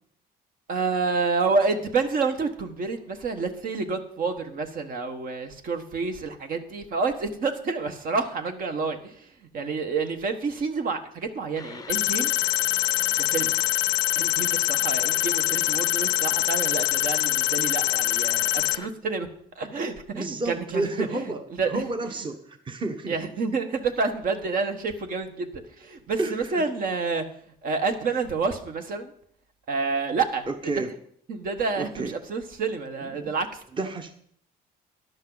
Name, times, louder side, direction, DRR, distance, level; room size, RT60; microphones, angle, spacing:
voice 1, 0.7-9.3 9.5-12.3 13.2-13.5 14.1-19.3 19.6-21.2 21.6-21.8 23.1-25.5 25.8-27.2 27.6-29.1 29.7-30.5 31.3-33.6, right 4 dB, 55° right, 6 dB, 1.4 m, -28 dB
sound 1, 11.6-18.9, left 5 dB, 20° left, 0.6 m, -42 dB
sound 2, 11.9-18.8, left 16 dB, 80° left, 0.6 m, -24 dB
voice 2, 20.1-21.4 21.7-23.2 26.2-26.6 30.5-30.9 31.8-32.1 33.1-33.3 33.7-34.1, right 2 dB, 30° right, 6 dB, 1.2 m, -30 dB
14.0 x 10.5 x 4.0 m, 0.65 s
cardioid pair, 110°, 17 cm